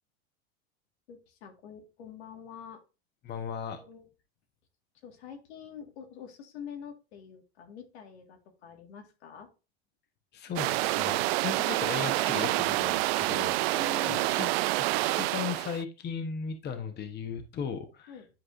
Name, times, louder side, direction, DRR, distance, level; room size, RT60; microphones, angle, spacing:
voice 1, 1.1-2.8 3.7-4.1 5.0-9.5 13.7-14.3 18.1-18.3, left 7 dB, 80° left, 2.0 m, -46 dB
voice 2, 3.2-3.8 10.3-13.5 14.0-18.1, left 7 dB, 30° left, 1.2 m, -37 dB
sound 1, 10.6-15.8, right 19 dB, 65° right, 0.5 m, -28 dB
10.5 x 4.8 x 2.7 m
supercardioid pair, 115°, 32 cm